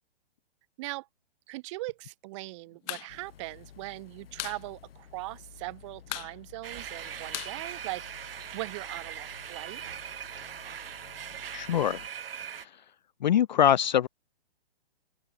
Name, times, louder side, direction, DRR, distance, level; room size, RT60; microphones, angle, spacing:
voice 1, 1.5-9.8, right 22 dB, 30° right, 2.5 m, -40 dB
sound 1, 2.7-3.1 3.4-3.5 3.8-4.6 4.9-5.0 5.3-5.7 6.0-8.4, left 30 dB, 15° left, 1.0 m, -39 dB
sound 2, 3.1-12.1, left 8 dB, 60° left, 6.8 m, -53 dB
sound 3, 6.6-12.6, right 9 dB, 60° right, 3.2 m, -41 dB
voice 2, 11.5-12.0 12.5-12.8 13.2-14.1, left 10 dB, 45° left, 0.6 m, -24 dB
open air
hypercardioid pair, 160°, 32 cm